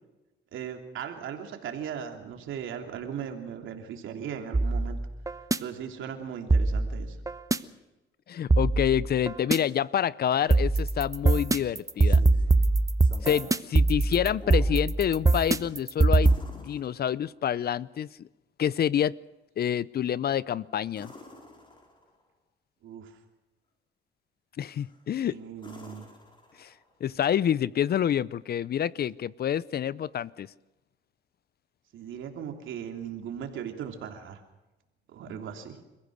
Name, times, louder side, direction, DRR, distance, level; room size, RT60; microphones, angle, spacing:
voice 1, 0.5-5.0 5.6-7.2 22.8-23.2 25.2-26.1 31.9-34.4 35.1-35.8, right 8 dB, 80° right, 4 dB, 3.1 m, -38 dB
sound 1, 4.5-5.6 6.5-7.6 8.5-9.6 10.5-16.4, right 3 dB, 15° right, 0.9 m, -22 dB
voice 2, 8.3-12.2 13.2-18.3 18.6-19.2 19.6-21.1 24.6-25.4 26.6-26.7 27.0-30.5, left 9 dB, 50° left, 20 dB, 0.6 m, -27 dB
sound 2, 11.9-12.5 13.0-13.6 14.0-14.8 16.2-17.5 20.9-22.2 24.7-25.1 25.6-27.0 29.1-29.2, left 2 dB, 25° left, 4.9 m, -48 dB
29.5 x 15.5 x 6.5 m, 1.1 s
cardioid pair, 90°, 20 cm